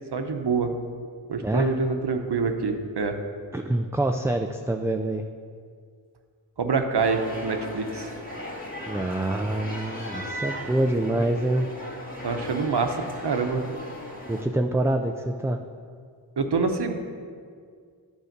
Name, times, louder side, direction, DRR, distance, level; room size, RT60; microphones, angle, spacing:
voice 1, 0.1-0.7 1.3-3.2 6.6-8.1 11.1-11.2 12.2-13.6 16.4-16.9, right 4 dB, 60° right, 6 dB, 0.9 m, -26 dB
voice 2, 1.4-1.7 3.5-5.2 8.9-11.7 14.3-15.6, right 1 dB, 5° right, 4 dB, 0.3 m, -26 dB
sound 1, 7.0-14.4, left 1 dB, 20° left, 2.0 m, -37 dB
9.2 x 4.9 x 6.6 m, 2.1 s
cardioid pair, 40°, 45 cm